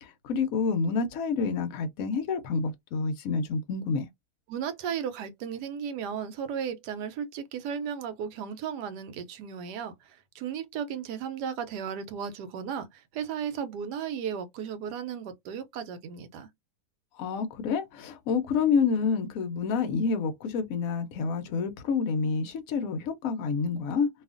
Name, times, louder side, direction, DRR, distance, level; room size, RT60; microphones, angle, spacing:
voice 1, 0.0-4.1 17.2-24.1, left 5 dB, 65° left, 1.0 m, -28 dB
voice 2, 4.5-16.5, right 7 dB, 90° right, 1.2 m, -35 dB
2.8 x 2.4 x 2.4 m
omnidirectional pair, 1.7 m